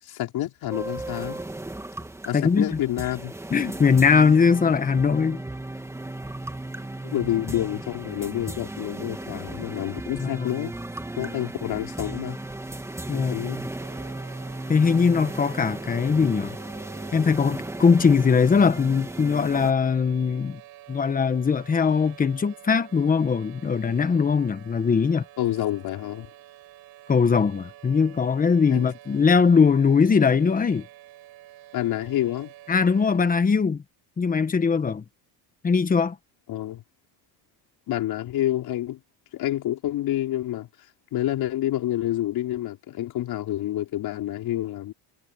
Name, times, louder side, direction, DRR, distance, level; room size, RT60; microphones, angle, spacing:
voice 1, 0.0-1.4 2.3-3.3 7.0-10.7 11.2-12.4 13.1-13.6 25.4-26.3 28.7-28.9 31.7-32.5 36.5-36.8 37.9-39.0 39.3-40.7 41.1-44.9, left 13 dB, 55° left, 4.8 m, -28 dB
sound 1, 0.7-19.7, right 2 dB, 5° right, 2.5 m, -36 dB
voice 2, 2.3-2.8 3.5-5.4 10.2-10.5 13.1-13.5 14.7-16.6 17.1-20.6 20.9-25.2 27.1-30.9 32.7-33.8 34.2-35.0 35.6-36.2, left 5 dB, 20° left, 1.3 m, -21 dB
sound 2, 13.8-33.2, right 15 dB, 55° right, 7.4 m, -49 dB
cardioid pair, 150°, 44 cm